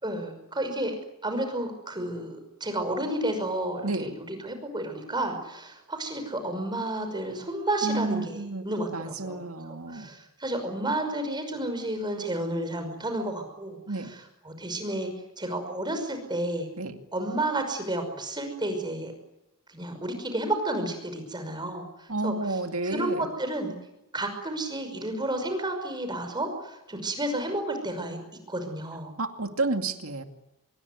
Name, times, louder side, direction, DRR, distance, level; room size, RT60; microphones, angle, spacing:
voice 1, 0.0-9.4 9.7-14.2 14.4-15.1 15.4-16.7 17.1-19.1 19.7-22.6 22.8-23.7 24.1-28.2 28.5-29.1, right 1 dB, 20° right, 6 dB, 5.7 m, -31 dB
voice 2, 3.8-4.2 7.8-8.6 8.9-10.1 13.9-14.1 16.8-17.0 22.1-23.3 29.2-30.2, right 2 dB, 65° right, 6 dB, 2.3 m, -31 dB
25.5 x 23.0 x 9.6 m, 0.91 s
head